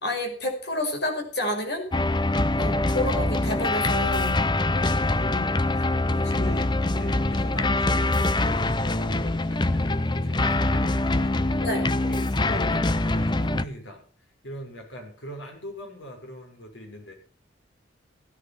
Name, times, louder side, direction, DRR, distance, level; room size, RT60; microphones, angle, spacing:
voice 1, 0.0-1.9 2.6-4.4 5.2-5.5 6.4-6.5 11.6-11.9, left 1 dB, 60° left, 5 dB, 5.3 m, -29 dB
sound 1, 1.9-13.6, left 2 dB, 25° left, 0.7 m, -24 dB
voice 2, 4.7-14.0 14.4-17.1, equal, 85° left, 3 dB, 6.4 m, -41 dB
16.5 x 11.5 x 5.9 m, 0.37 s
head